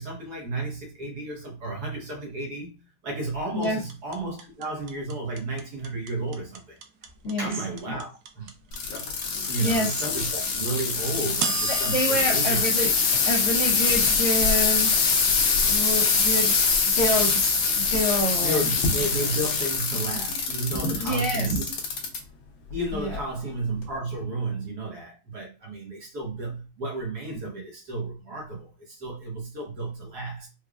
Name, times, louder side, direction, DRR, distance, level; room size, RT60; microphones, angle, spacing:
voice 1, 0.0-2.7 3.0-6.8 7.4-8.1 8.3-8.5 8.8-9.1 9.5-12.6 15.6-15.7 18.4-21.7 22.7-30.5, right 2 dB, 55° right, 1.4 m, -32 dB
sound 1, 3.6-13.8, right 7 dB, 80° right, 0.9 m, -35 dB
sound 2, 8.7-22.2 22.7-23.2 23.8-23.9, left 5 dB, 70° left, 1.5 m, -24 dB
voice 2, 9.6-9.9 11.9-12.9 13.2-15.0 15.7-16.5 17.0-17.5 17.8-18.6 20.7-21.7 22.9-23.2, equal, 50° left, 0.9 m, -27 dB
4.9 x 2.2 x 2.3 m
omnidirectional pair, 2.2 m